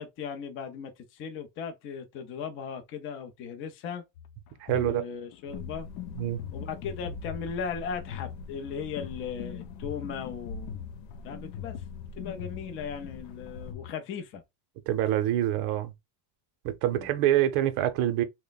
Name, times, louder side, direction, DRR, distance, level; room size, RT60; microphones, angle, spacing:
voice 1, 0.0-4.0 4.7-5.9 6.5-10.9 11.2-11.8 12.2-14.4 16.9-17.1, left 6 dB, 30° left, 0.4 m, -37 dB
sound 1, 4.2-13.9, left 9 dB, 70° left, 0.7 m, -41 dB
voice 2, 4.6-5.0 6.2-6.4 14.9-15.9 16.6-18.2, right 12 dB, 55° right, 0.7 m, -26 dB
sound 2, 5.5-13.7, left 3 dB, 90° left, 1.0 m, -45 dB
3.2 x 2.2 x 3.9 m
cardioid pair, 170°, 48 cm